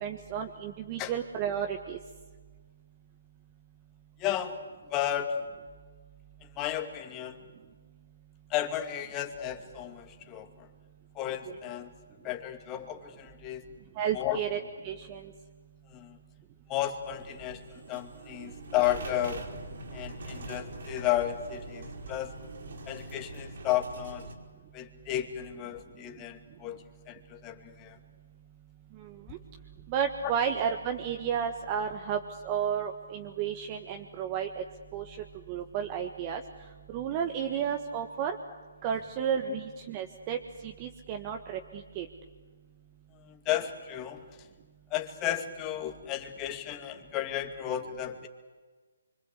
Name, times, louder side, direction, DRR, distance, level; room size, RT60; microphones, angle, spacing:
voice 1, 0.0-2.0 11.4-11.6 14.0-15.3 29.0-29.4 29.9-34.6 34.9-35.2 35.5-36.4 36.9-38.4 38.8-42.1, right 8 dB, 30° right, 5 dB, 1.5 m, -32 dB
voice 2, 4.2-4.6 4.9-5.4 6.6-7.4 8.5-10.7 11.2-11.9 12.2-13.6 14.1-14.4 15.9-16.2 16.7-19.4 19.9-22.3 22.9-24.3 24.7-28.0 30.2-30.3 43.2-44.3 44.9-48.3, left 12 dB, 20° left, 6 dB, 2.4 m, -33 dB
sound 1, 17.1-24.4, right 2 dB, 60° right, 4.6 m, -43 dB
25.5 x 25.0 x 8.4 m, 1.4 s
figure-of-eight pair, 145°, 0 cm